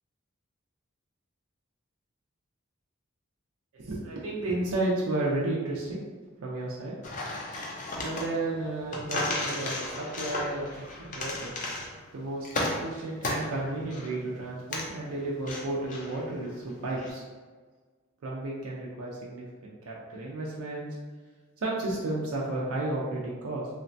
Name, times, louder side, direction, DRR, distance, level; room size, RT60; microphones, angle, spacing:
voice 1, 3.7-6.0 6.4-7.0 8.0-11.8 12.1-17.2 18.2-21.0 21.6-23.7, right 2 dB, 90° right, -4 dB, 0.4 m, -33 dB
sound 1, 7.0-17.1, left 2 dB, 40° left, 0.4 m, -35 dB
3.1 x 2.1 x 2.5 m, 1.4 s
head